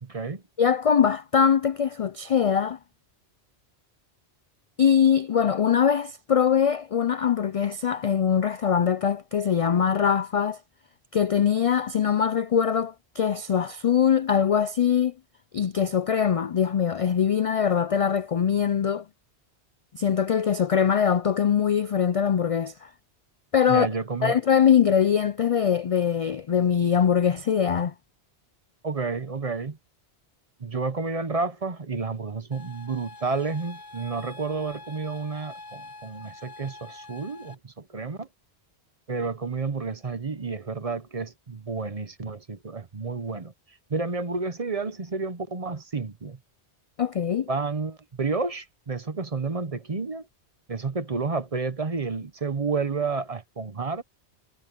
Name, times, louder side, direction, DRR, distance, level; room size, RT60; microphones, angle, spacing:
voice 1, 0.0-0.4 23.7-24.4 28.8-29.8 30.6-38.3 39.1-43.5 43.9-46.4 47.5-50.3 50.7-54.0, right 4 dB, 35° right, 1.0 m, -30 dB
voice 2, 0.6-2.8 4.8-10.6 11.1-15.1 15.5-19.0 19.9-22.9 23.5-23.9 24.2-27.9 47.0-47.5, left 8 dB, 60° left, 0.3 m, -22 dB
sound 1, 32.5-37.5, left 2 dB, 20° left, 5.2 m, -45 dB
omnidirectional pair, 1.1 m